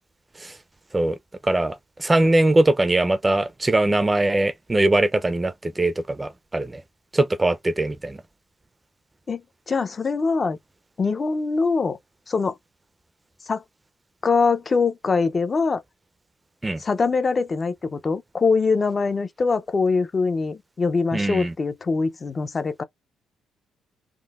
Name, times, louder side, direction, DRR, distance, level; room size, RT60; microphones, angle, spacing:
voice 1, 1.4-6.8 7.1-8.2 16.6-16.8 21.1-21.5, right 2 dB, 15° right, 0.5 m, -21 dB
voice 2, 9.7-10.6 11.0-12.0 12.3-12.5 13.5-13.6 14.2-15.8 16.8-22.8, left 4 dB, 35° left, 0.5 m, -23 dB
3.6 x 2.1 x 2.4 m
cardioid pair, 90°, 0 cm